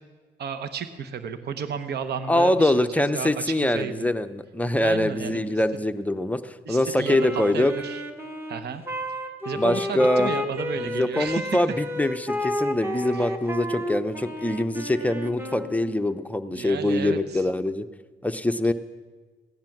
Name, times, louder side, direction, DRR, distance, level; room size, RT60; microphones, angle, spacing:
voice 1, 0.4-4.1 4.8-5.6 6.7-8.0 8.5-8.8 9.4-11.6 13.1-13.3 16.5-17.4, right 7 dB, 55° right, 10 dB, 0.9 m, -33 dB
voice 2, 2.3-7.7 9.6-10.3 10.8-17.9 18.2-18.7, left 1 dB, 5° left, 9 dB, 0.6 m, -24 dB
Wind instrument woodwind instrument, 7.0-16.0, left 1 dB, 10° right, 1.3 m, -31 dB
16.0 x 10.5 x 6.0 m, 1.4 s
cardioid pair, 90°, 20 cm